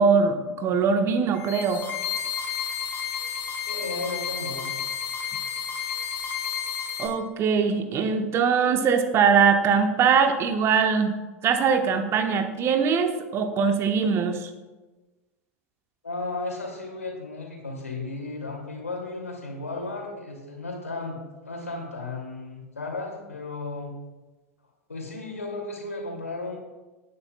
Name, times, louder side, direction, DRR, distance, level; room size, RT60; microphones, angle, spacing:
voice 1, 0.0-1.8 7.0-11.1 11.4-14.5, right 6 dB, 35° right, 6 dB, 1.3 m, -22 dB
sound 1, 1.3-7.1, left 7 dB, 25° left, 3.1 m, -31 dB
voice 2, 3.7-4.7 16.0-23.9 24.9-26.6, left 3 dB, 80° left, 0 dB, 2.8 m, -34 dB
19.0 x 9.7 x 2.4 m, 1.2 s
figure-of-eight pair, 85°, 8 cm